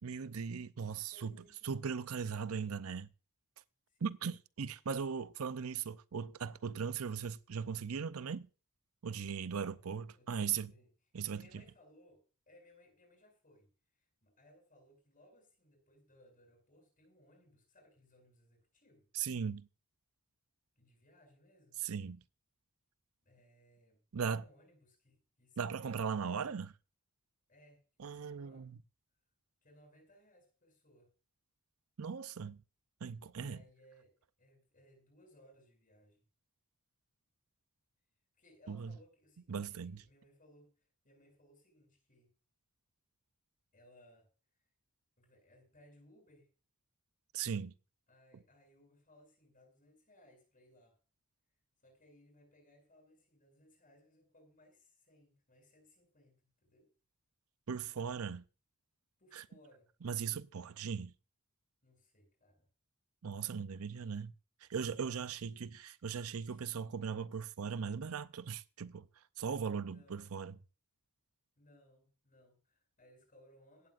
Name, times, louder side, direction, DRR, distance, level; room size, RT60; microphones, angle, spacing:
voice 1, 0.0-1.3 1.6-3.1 4.0-8.5 9.0-10.7 11.1-11.6 19.1-19.7 21.8-22.2 24.1-24.4 25.6-26.7 28.0-28.8 32.0-32.6 33.0-33.6 38.7-38.9 39.5-40.0 47.3-47.7 57.7-58.4 59.3-59.4 60.0-61.1 63.2-64.3 64.6-69.1 69.4-70.6, right 6 dB, 70° right, 0.6 m, -38 dB
voice 2, 1.1-1.9 2.3-2.9 3.9-4.1 9.5-9.9 10.1-10.9 11.3-13.7 13.9-19.1 20.8-21.8 23.2-26.5 27.5-28.7 29.6-31.1 33.3-34.1 34.4-36.2 38.4-42.3 43.7-44.3 45.2-46.5 48.1-51.0 51.8-56.9 59.2-59.9 61.8-62.7 65.2-65.7 66.4-66.6 69.9-70.3 71.6-73.9, left 1 dB, 35° left, 7.7 m, -65 dB
16.5 x 15.0 x 2.5 m
head